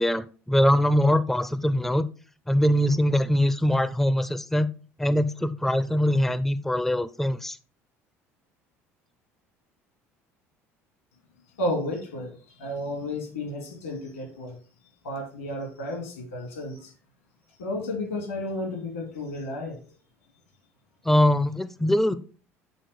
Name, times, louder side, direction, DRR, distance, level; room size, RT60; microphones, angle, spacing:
voice 1, 0.0-2.0 2.5-4.7 5.0-7.6 21.0-22.1, equal, 5° left, 15 dB, 0.5 m, -22 dB
voice 2, 11.6-14.6 15.0-16.9 17.6-19.8, left 1 dB, 80° left, 4 dB, 2.4 m, -32 dB
8.2 x 3.8 x 4.8 m, 0.37 s
hypercardioid pair, 60°, 8 cm